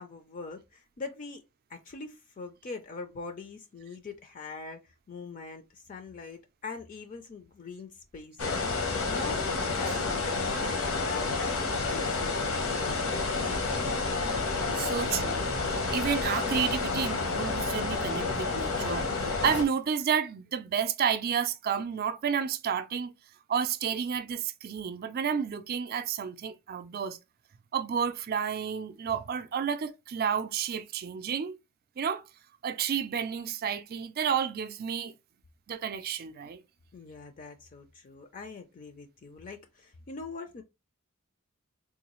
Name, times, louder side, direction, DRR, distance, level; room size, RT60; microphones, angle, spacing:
voice 1, 0.0-1.4 1.7-9.4 9.7-13.5 36.9-40.6, left 4 dB, 40° left, 0.4 m, -43 dB
sound 1, 8.4-19.6, left 3 dB, 70° left, 0.8 m, -30 dB
voice 2, 14.7-15.5 15.9-23.1 23.5-27.2 27.7-31.6 32.0-32.2 32.6-35.1 35.7-36.6, right 7 dB, 45° right, 0.4 m, -31 dB
3.7 x 2.3 x 3.0 m
head